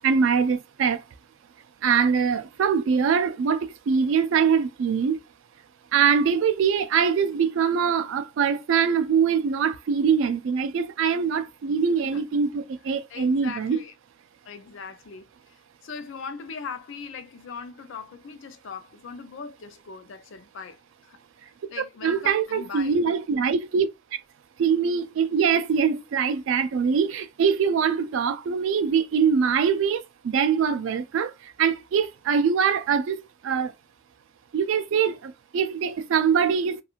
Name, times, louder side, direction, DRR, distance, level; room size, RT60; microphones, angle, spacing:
voice 1, 0.0-1.0 1.8-5.2 5.9-13.8 22.0-23.9 24.6-31.3 31.6-33.2 33.4-33.7 34.5-36.8, right 6 dB, 75° right, 0.3 m, -23 dB
voice 2, 13.1-13.9 14.4-20.8 21.1-21.2 21.7-23.0, left 5 dB, 70° left, 0.4 m, -40 dB
2.9 x 2.3 x 2.4 m
head